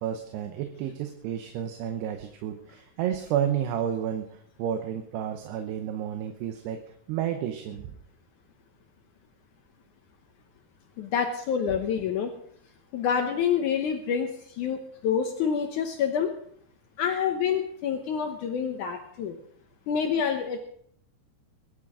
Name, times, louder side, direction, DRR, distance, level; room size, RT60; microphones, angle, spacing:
voice 1, 0.0-6.8 7.1-7.9, right 9 dB, 80° right, 6 dB, 3.0 m, -31 dB
voice 2, 11.0-12.3 12.9-16.3 17.0-19.3 19.9-20.6, left 7 dB, 80° left, 5 dB, 1.8 m, -27 dB
21.5 x 11.5 x 3.7 m, 0.65 s
omnidirectional pair, 4.9 m